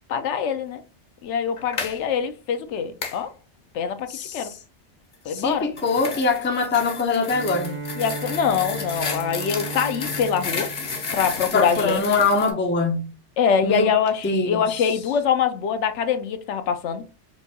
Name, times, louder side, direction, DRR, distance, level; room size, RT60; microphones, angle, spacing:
voice 1, 0.1-0.8 1.2-3.3 3.7-4.5 5.3-5.7 8.0-10.7 11.1-12.0 13.4-17.0, left 7 dB, 75° left, 0.9 m, -24 dB
sound 1, 1.6-2.0 3.0-3.2 5.4-12.5, left 4 dB, 45° left, 0.9 m, -32 dB
voice 2, 4.1-4.5 5.3-7.7 11.5-13.1 13.6-13.9 14.2-14.8, left 3 dB, 15° left, 0.4 m, -23 dB
Bowed string instrument, 7.2-12.0, right 3 dB, 85° right, 1.4 m, -36 dB
4.4 x 2.2 x 2.7 m
omnidirectional pair, 1.2 m